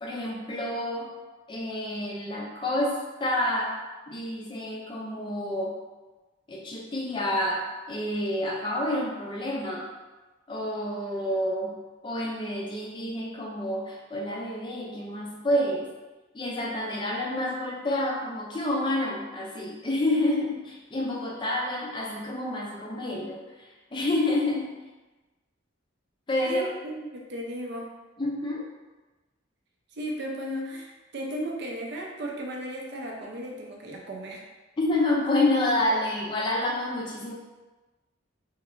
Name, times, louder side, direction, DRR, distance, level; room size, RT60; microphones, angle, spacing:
voice 1, 0.0-1.1 1.5-3.8 4.1-5.8 6.5-9.9 10.5-11.8 12.0-15.9 16.3-24.8 26.3-26.6 28.2-28.7 34.8-37.3, left 1 dB, 25° left, -2 dB, 0.4 m, -28 dB
voice 2, 26.5-27.9 30.0-34.4, equal, 55° right, -1 dB, 0.5 m, -35 dB
3.2 x 2.8 x 2.4 m, 1.2 s
head